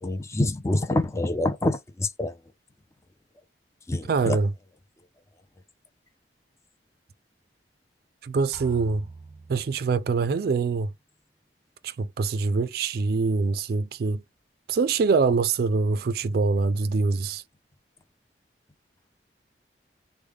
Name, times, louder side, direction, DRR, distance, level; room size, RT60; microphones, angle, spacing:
voice 1, 0.0-2.3 3.9-4.4, left 2 dB, 15° left, 0.4 m, -26 dB
voice 2, 4.1-4.5 8.2-9.1 9.5-10.9 11.8-14.2 14.7-17.4, right 4 dB, 60° right, 0.3 m, -24 dB
sound 1, 8.5-10.4, right 3 dB, 15° right, 1.2 m, -44 dB
3.2 x 2.1 x 3.4 m
head